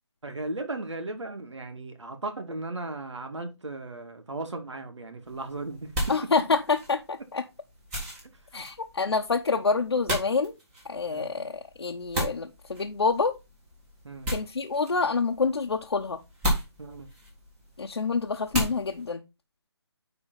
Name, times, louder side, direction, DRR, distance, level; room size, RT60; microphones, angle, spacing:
voice 1, 0.2-6.4 8.5-8.7 11.1-11.5 14.0-14.4 16.8-17.1, right 2 dB, 85° right, 2.1 m, -36 dB
sound 1, 5.2-19.1, equal, 10° right, 1.6 m, -36 dB
voice 2, 6.1-7.4 8.5-10.5 10.9-11.5 11.8-13.3 14.3-16.2 17.8-19.2, left 4 dB, 65° left, 1.0 m, -27 dB
9.8 x 3.9 x 3.9 m
hypercardioid pair, 170°, 15 cm